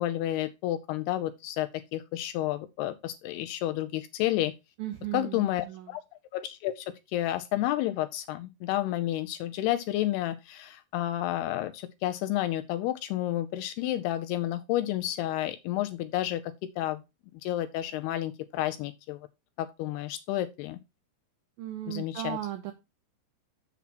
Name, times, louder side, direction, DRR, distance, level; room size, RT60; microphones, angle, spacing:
voice 1, 0.0-4.5 5.1-6.0 6.3-17.0 17.4-19.2 19.6-20.8 21.9-22.4, left 14 dB, 80° left, 2.4 m, -31 dB
voice 2, 4.8-6.0 21.6-22.7, right 13 dB, 80° right, 2.1 m, -36 dB
7.3 x 6.9 x 4.2 m
omnidirectional pair, 5.0 m